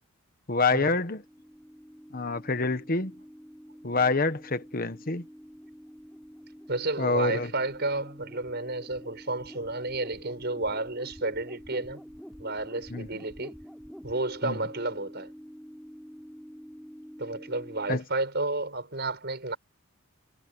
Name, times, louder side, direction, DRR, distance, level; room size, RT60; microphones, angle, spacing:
voice 1, 0.5-1.2 2.1-3.1 3.8-5.2 7.0-7.5 12.9-13.1 14.4-14.6 17.9-18.0, left 3 dB, 40° left, 1.2 m, -26 dB
sound 1, 1.1-18.0, equal, ahead, 6.7 m, -47 dB
voice 2, 6.7-12.0 12.4-13.6 14.0-15.3 17.2-19.6, right 2 dB, 50° right, 6.3 m, -31 dB
head